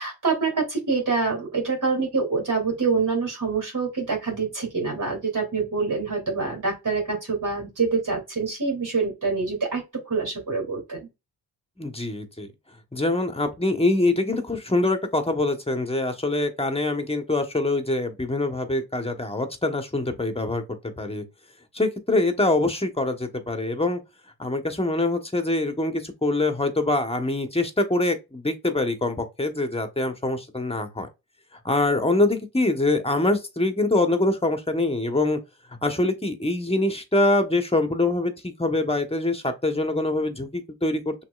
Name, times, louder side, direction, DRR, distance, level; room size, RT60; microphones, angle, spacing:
voice 1, 0.0-11.0, right 4 dB, 45° right, 2.9 m, -26 dB
voice 2, 11.8-12.5 12.9-21.2 21.7-24.0 24.4-31.1 31.6-35.4 35.7-41.2, left 2 dB, 15° left, 1.2 m, -24 dB
5.9 x 3.2 x 2.5 m
hypercardioid pair, 40°, 42 cm